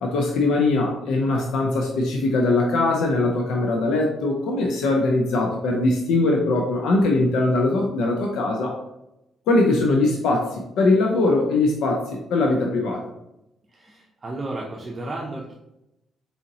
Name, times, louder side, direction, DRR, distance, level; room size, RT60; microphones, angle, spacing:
voice 1, 0.0-8.8 9.5-13.0, left 2 dB, 85° left, 1 dB, 0.6 m, -21 dB
voice 2, 13.7-15.5, right 2 dB, 30° right, -2 dB, 0.7 m, -33 dB
4.2 x 3.7 x 2.9 m, 0.89 s
cardioid pair, 90°, 0 cm